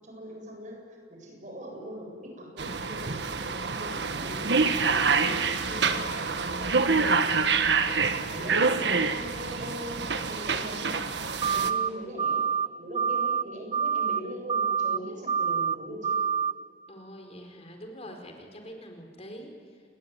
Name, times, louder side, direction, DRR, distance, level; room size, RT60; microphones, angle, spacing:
voice 1, 0.0-11.0 11.5-12.4 12.8-16.2, equal, 45° right, 1 dB, 7.9 m, -41 dB
sound 1, 2.6-11.7, right 4 dB, 75° right, 1.5 m, -26 dB
sound 2, 11.4-11.9 12.2-12.7 12.9-13.4 13.7-14.2 14.5-15.0 15.3-15.8 16.0-16.5, right 6 dB, 30° right, 0.7 m, -26 dB
voice 2, 11.6-11.9 16.9-19.8, equal, 35° left, 4 dB, 4.3 m, -45 dB
28.5 x 21.0 x 9.8 m, 2.1 s
head